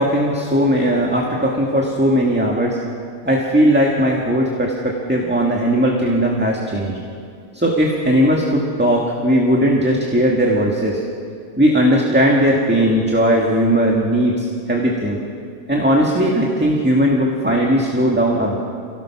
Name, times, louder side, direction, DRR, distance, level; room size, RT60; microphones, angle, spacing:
voice 1, 0.0-2.8 3.2-7.0 7.5-11.0 11.6-15.2 15.7-18.6, equal, 5° right, -2 dB, 1.8 m, -17 dB
29.0 x 17.5 x 5.9 m, 2.3 s
omnidirectional pair, 1.5 m